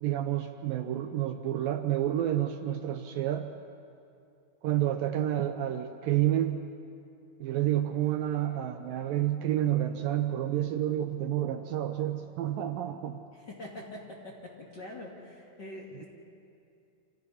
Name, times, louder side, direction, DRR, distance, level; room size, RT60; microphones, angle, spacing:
voice 1, 0.0-3.5 4.6-6.7 7.4-13.2, right 12 dB, 75° right, 7 dB, 2.3 m, -29 dB
voice 2, 13.3-16.1, left 1 dB, 35° left, -2 dB, 2.2 m, -44 dB
26.5 x 15.5 x 9.9 m, 2.5 s
omnidirectional pair, 4.5 m